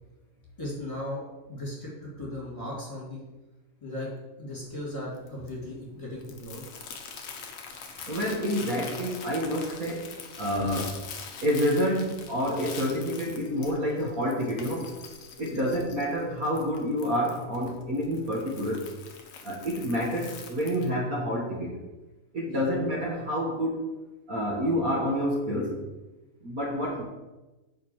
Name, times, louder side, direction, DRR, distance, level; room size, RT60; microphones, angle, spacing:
voice 1, 0.6-1.2 1.5-3.2 3.8-4.1 4.4-6.7 15.5-15.7 22.5-22.6, left 1 dB, 10° left, -6 dB, 2.5 m, -37 dB
Crumpling crinkling, 4.5-20.9, left 6 dB, 65° left, 1.5 m, -44 dB
voice 2, 8.1-11.0 11.4-14.9 15.4-18.9 19.4-21.8 22.3-23.8 24.3-25.8 26.4-27.0, equal, 80° right, -3 dB, 0.8 m, -28 dB
9.4 x 5.3 x 6.3 m, 1.1 s
omnidirectional pair, 3.9 m